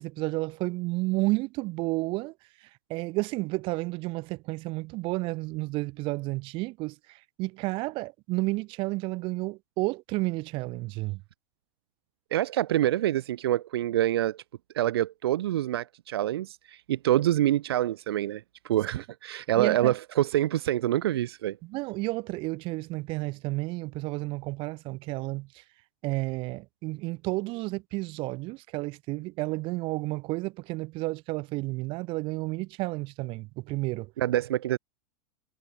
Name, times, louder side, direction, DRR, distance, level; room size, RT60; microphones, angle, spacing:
voice 1, 0.0-2.3 2.9-11.2 19.6-19.9 21.6-25.6 26.0-34.1, right 22 dB, 45° right, 7.4 m, -31 dB
voice 2, 12.3-14.4 14.7-21.6 34.2-34.8, right 13 dB, 80° right, 4.7 m, -26 dB
supercardioid pair, 145°, 13 cm